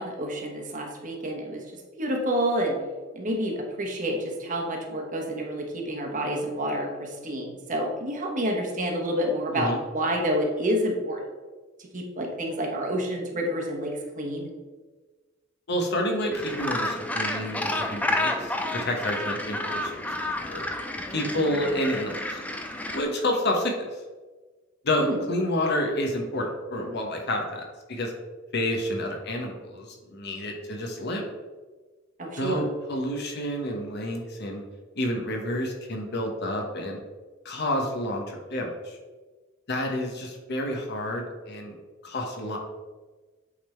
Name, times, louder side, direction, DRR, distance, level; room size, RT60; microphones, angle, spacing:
voice 1, 0.0-2.8 3.1-11.2 11.9-14.5 25.0-25.2 32.2-32.6, equal, 40° right, 1 dB, 1.2 m, -29 dB
voice 2, 15.7-20.6 21.1-22.4 22.9-23.9 24.8-28.1 28.5-31.2 32.4-34.6 35.0-37.0 37.4-39.0 39.7-41.7 42.0-42.6, left 1 dB, 55° left, 1 dB, 1.1 m, -29 dB
Gull seagull, 16.3-23.0, left 1 dB, 5° left, 0.5 m, -30 dB
8.4 x 3.7 x 4.4 m, 1.3 s
head